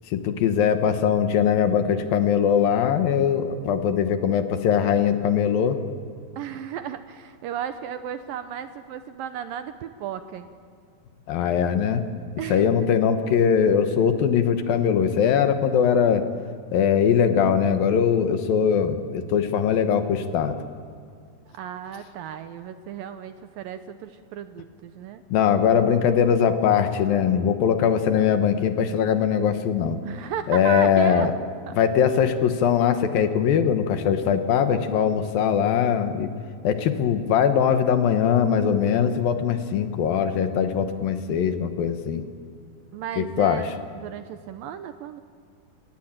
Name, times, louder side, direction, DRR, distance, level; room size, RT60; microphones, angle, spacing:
voice 1, 0.1-5.8 11.3-12.0 12.5-16.2 16.7-20.6 25.3-30.0 30.5-31.3 31.8-36.3 36.6-42.2 43.2-43.6, left 8 dB, 70° left, 8 dB, 2.7 m, -21 dB
voice 2, 6.4-10.5 12.4-12.7 21.5-25.2 30.0-31.3 31.7-31.8 42.9-43.7 44.0-45.2, right 9 dB, 75° right, 10 dB, 2.2 m, -34 dB
29.5 x 18.0 x 8.9 m, 2.1 s
omnidirectional pair, 4.6 m